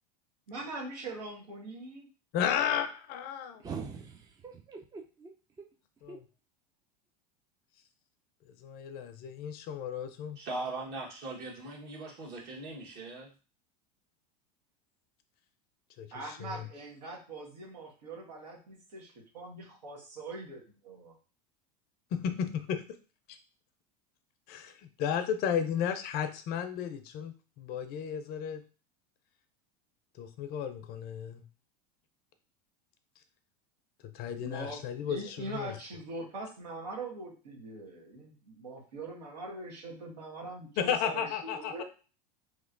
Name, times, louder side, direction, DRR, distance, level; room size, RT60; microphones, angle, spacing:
voice 1, 0.5-2.1 16.1-21.2 34.4-34.8 35.1-41.8, right 2 dB, 85° right, 1.3 m, -42 dB
voice 2, 2.3-3.6 6.0-6.2 8.5-10.4 16.0-16.7 22.1-22.8 23.3-23.4 24.5-28.6 30.2-31.4 34.0-35.8 40.8-41.8, left 8 dB, 50° left, 0.5 m, -34 dB
voice 3, 3.6-5.3 5.6-5.7 6.1-6.2, right 5 dB, 15° right, 0.5 m, -43 dB
voice 4, 10.4-13.3, right 2 dB, 50° right, 1.3 m, -40 dB
3.0 x 3.0 x 2.5 m
hypercardioid pair, 95°, 21 cm